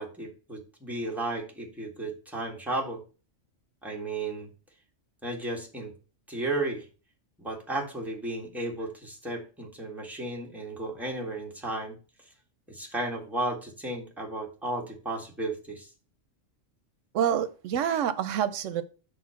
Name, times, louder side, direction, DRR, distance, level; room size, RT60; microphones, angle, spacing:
voice 1, 0.0-3.0 3.8-4.5 5.2-5.9 6.3-6.9 7.4-12.0 12.7-15.9, right 2 dB, ahead, 1.7 m, -34 dB
voice 2, 17.1-18.8, right 9 dB, 85° right, 1.0 m, -27 dB
6.7 x 4.0 x 5.7 m
omnidirectional pair, 1.3 m